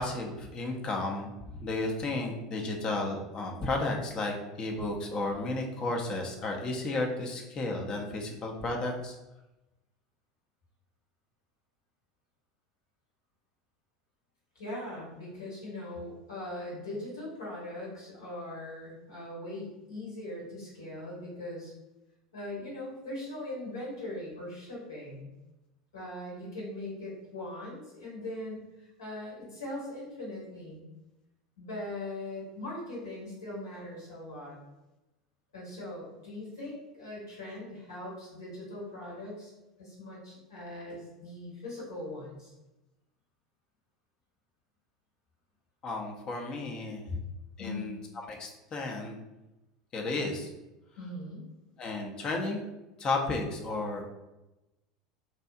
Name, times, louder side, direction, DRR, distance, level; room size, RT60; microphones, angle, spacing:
voice 1, 0.0-1.3 1.6-9.2 45.8-47.0 47.6-49.2 49.9-50.5 51.8-52.6 53.0-54.0, left 2 dB, 35° left, 1 dB, 0.6 m, -33 dB
voice 2, 14.5-21.7 22.3-25.3 25.9-28.7 29.0-30.8 31.6-34.6 35.5-39.5 39.8-42.5 47.1-47.2 47.6-47.9 51.0-51.4, left 1 dB, 75° left, -5 dB, 1.2 m, -40 dB
2.7 x 2.4 x 2.4 m, 0.99 s
figure-of-eight pair, 75°, 2 cm